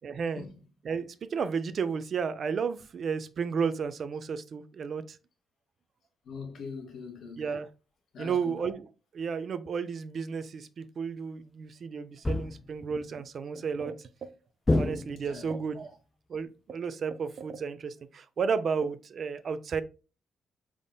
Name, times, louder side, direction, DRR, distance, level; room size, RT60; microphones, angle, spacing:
voice 1, 0.0-0.5 0.8-5.2 7.4-7.7 8.2-8.9 9.1-14.0 14.7-16.0 16.3-19.8, right 6 dB, 50° right, 0.4 m, -32 dB
voice 2, 6.2-7.5 8.1-8.6 15.2-15.5, left 5 dB, 65° left, 1.0 m, -42 dB
sound 1, 12.2-12.8 14.7-15.5, left 2 dB, 20° left, 0.3 m, -28 dB
3.8 x 3.5 x 2.2 m
cardioid pair, 95°, 0 cm